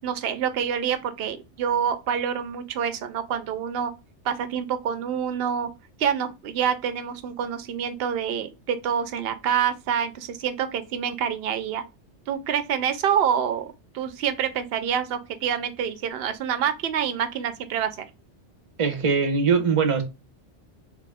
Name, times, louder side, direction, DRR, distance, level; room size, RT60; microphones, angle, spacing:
voice 1, 0.0-3.9 4.2-5.7 6.0-11.8 12.3-18.0, right 8 dB, 65° right, 0.8 m, -27 dB
voice 2, 18.8-20.0, right 5 dB, 35° right, 0.7 m, -21 dB
3.5 x 2.5 x 3.2 m
omnidirectional pair, 1.2 m